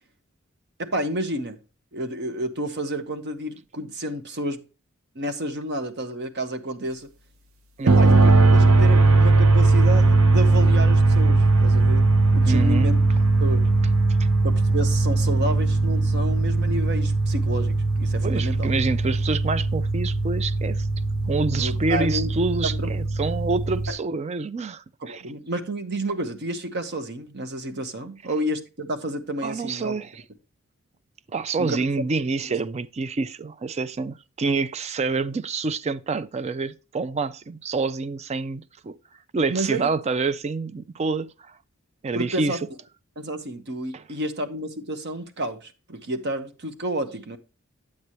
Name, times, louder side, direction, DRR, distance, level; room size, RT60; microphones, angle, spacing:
voice 1, 0.8-1.6 1.9-4.6 5.1-7.1 7.8-13.0 13.4-13.6 14.4-18.7 21.4-22.3 22.6-22.9 23.9-24.0 25.0-30.0 31.6-31.8 32.5-32.6 39.5-39.9 42.1-42.6 43.2-47.4, right 1 dB, 55° right, 1.0 m, -30 dB
sound 1, 7.9-23.9, right 2 dB, 75° right, 0.8 m, -19 dB
voice 2, 12.4-12.9 14.2-14.3 18.2-20.9 21.3-25.2 29.4-30.1 31.3-39.0 39.3-41.3 42.0-42.6 43.9-44.0, right 4 dB, 30° right, 0.4 m, -27 dB
8.7 x 8.1 x 3.0 m
head